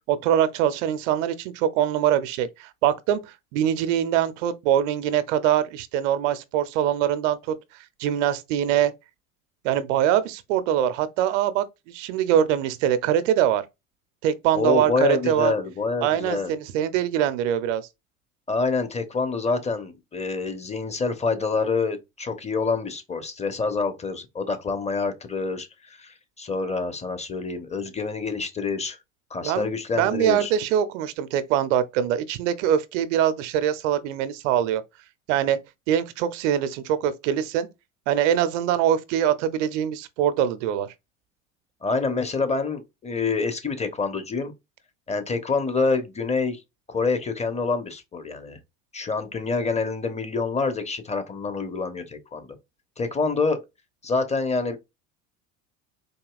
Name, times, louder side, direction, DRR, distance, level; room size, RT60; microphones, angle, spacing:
voice 1, 0.1-3.2 3.5-7.5 8.0-8.9 9.6-13.6 14.2-15.5 16.0-17.8 29.4-34.8 35.3-35.6 35.9-37.7 38.1-40.9, right 10 dB, 65° right, 0.6 m, -23 dB
voice 2, 14.5-16.5 18.5-29.0 29.3-30.5 41.8-44.5 45.1-46.6 46.9-48.6 48.9-52.5 53.0-53.6 54.0-54.8, left 4 dB, 15° left, 0.8 m, -27 dB
4.1 x 2.7 x 2.3 m
hypercardioid pair, 75°, 40 cm